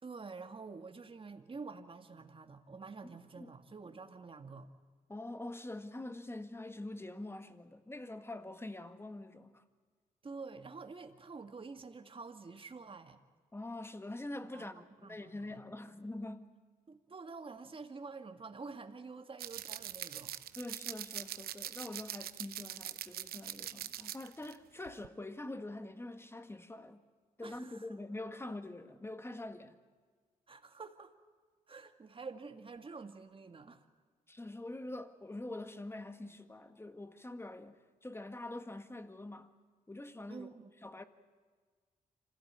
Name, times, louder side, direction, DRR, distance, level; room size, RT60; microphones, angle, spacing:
voice 1, 0.0-4.7 10.2-13.2 14.5-14.7 15.0-15.6 16.9-20.3 27.4-27.9 30.5-31.1 31.7-33.9 40.3-40.7, right 4 dB, 35° right, 2.0 m, -48 dB
voice 2, 3.0-3.5 5.1-9.6 13.5-16.6 20.6-27.0 27.4-29.8 34.3-39.5 39.9-40.5 40.8-41.0, left 2 dB, 15° left, 1.7 m, -45 dB
sound 1, 19.4-24.5 24.9-25.1, right 11 dB, 75° right, 0.8 m, -43 dB
26.0 x 16.0 x 8.9 m
cardioid pair, 65°, 16 cm